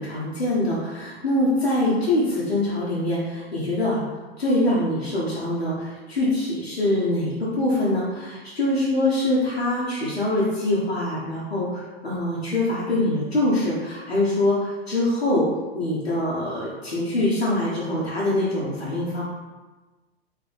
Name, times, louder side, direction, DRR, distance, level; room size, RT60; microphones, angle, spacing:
voice 1, 0.0-4.0 4.4-15.4 15.7-19.2, left 1 dB, 80° left, -8 dB, 1.1 m, -24 dB
3.7 x 3.7 x 3.3 m, 1.2 s
figure-of-eight pair, 95°, 31 cm